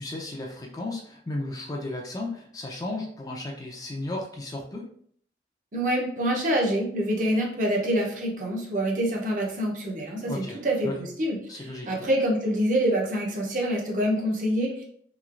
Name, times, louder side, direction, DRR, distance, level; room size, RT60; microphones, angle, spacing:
voice 1, 0.0-4.9 10.3-11.1 11.5-12.1, left 2 dB, 20° left, 0 dB, 0.4 m, -34 dB
voice 2, 5.7-14.8, equal, 45° right, 0 dB, 0.6 m, -26 dB
3.1 x 2.8 x 2.4 m, 0.62 s
head